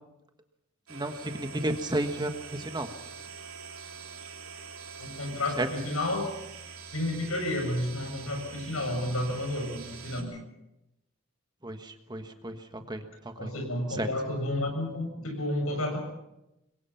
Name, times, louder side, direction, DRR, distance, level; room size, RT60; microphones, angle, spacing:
voice 1, 0.9-2.9 5.6-5.7 11.6-13.5 13.9-14.1, right 1 dB, 20° right, 6 dB, 1.5 m, -33 dB
sound 1, 0.9-10.2, right 5 dB, 85° right, 3.9 m, -44 dB
voice 2, 5.0-6.3 6.9-10.4 13.4-16.0, left 1 dB, 80° left, 4 dB, 7.2 m, -31 dB
26.5 x 22.5 x 5.8 m, 0.89 s
head